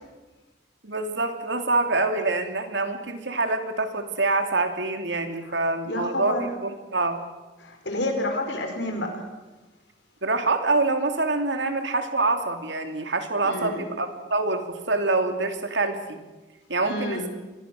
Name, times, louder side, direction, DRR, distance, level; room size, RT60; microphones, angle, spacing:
voice 1, 0.8-7.2 10.2-16.2 16.7-17.3, right 3 dB, 80° right, 6 dB, 2.8 m, -26 dB
voice 2, 5.5-6.5 7.6-9.2 13.4-13.9 16.8-17.3, left 1 dB, 75° left, 4 dB, 5.0 m, -30 dB
26.5 x 21.5 x 6.5 m, 1.2 s
head